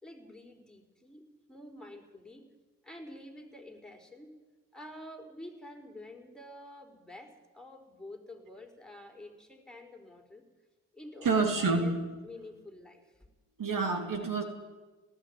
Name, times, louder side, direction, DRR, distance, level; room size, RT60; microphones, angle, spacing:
voice 1, 0.0-2.5 2.8-4.4 4.7-10.5 10.9-11.9 12.2-13.3, left 1 dB, ahead, 2 dB, 4.6 m, -49 dB
voice 2, 11.2-12.0 13.6-14.4, right 4 dB, 60° right, 4 dB, 3.0 m, -28 dB
18.5 x 14.5 x 9.6 m, 1.2 s
supercardioid pair, 45°, 36 cm